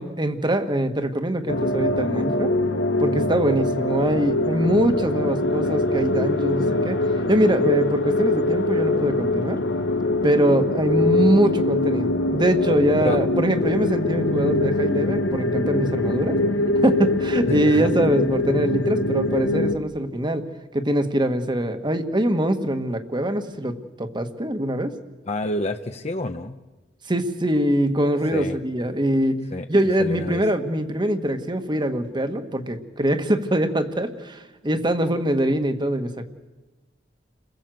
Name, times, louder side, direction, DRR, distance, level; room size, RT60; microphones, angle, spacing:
voice 1, 0.0-2.5 3.0-7.0 7.3-9.6 10.2-16.4 16.8-20.5 20.7-24.9 27.1-29.4 29.7-36.3, right 1 dB, 25° right, 8 dB, 1.7 m, -23 dB
sound 1, 1.5-19.8, left 2 dB, 80° left, 1.3 m, -23 dB
voice 2, 17.5-17.9 25.3-26.6 28.3-28.6 29.5-29.7 30.0-30.4, left 1 dB, 40° left, 6 dB, 1.0 m, -28 dB
29.5 x 21.0 x 7.8 m, 1.2 s
head